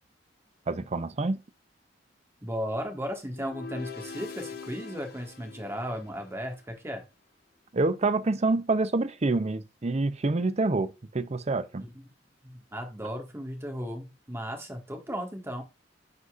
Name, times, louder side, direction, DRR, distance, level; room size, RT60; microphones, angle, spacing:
voice 1, 0.7-1.4 7.7-11.8, right 3 dB, 35° right, 0.6 m, -27 dB
voice 2, 2.4-7.0 11.9-12.0 12.4-15.6, equal, 15° right, 1.6 m, -35 dB
sound 1, 3.3-6.6, left 5 dB, 55° left, 0.8 m, -43 dB
9.6 x 4.1 x 2.4 m
head